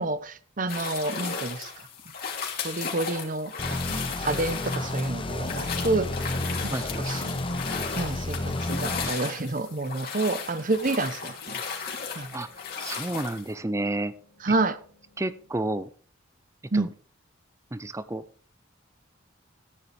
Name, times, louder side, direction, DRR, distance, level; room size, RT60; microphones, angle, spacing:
voice 1, 0.0-1.7 2.6-6.1 6.6-7.3 8.0-11.6 12.2-12.3 14.4-14.8 16.7-16.9, right 2 dB, 45° right, 0.8 m, -29 dB
sound 1, 0.7-13.5, left 5 dB, 50° left, 2.7 m, -35 dB
sound 2, 3.6-9.1, left 1 dB, 25° left, 0.7 m, -31 dB
sound 3, 5.4-15.6, left 3 dB, 85° left, 1.9 m, -48 dB
voice 2, 6.7-7.0 12.3-12.5 12.8-14.1 15.2-15.9 16.7-16.9 17.7-18.2, right 1 dB, 15° right, 0.5 m, -30 dB
14.0 x 9.6 x 3.4 m
head